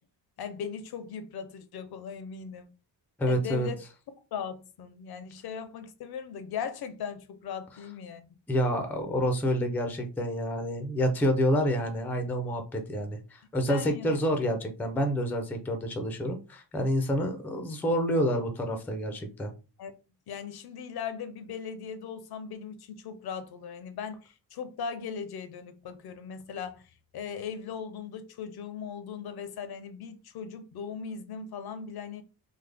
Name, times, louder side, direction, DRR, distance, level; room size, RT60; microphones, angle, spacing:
voice 1, 0.4-2.7 3.3-3.8 4.3-8.3 13.7-14.1 19.8-19.9 20.3-26.9 27.1-32.2, left 7 dB, 60° left, 0.5 m, -38 dB
voice 2, 3.2-3.7 8.5-19.5, equal, 5° left, 0.4 m, -28 dB
3.5 x 2.0 x 3.3 m
wide cardioid pair, 155°, 42 cm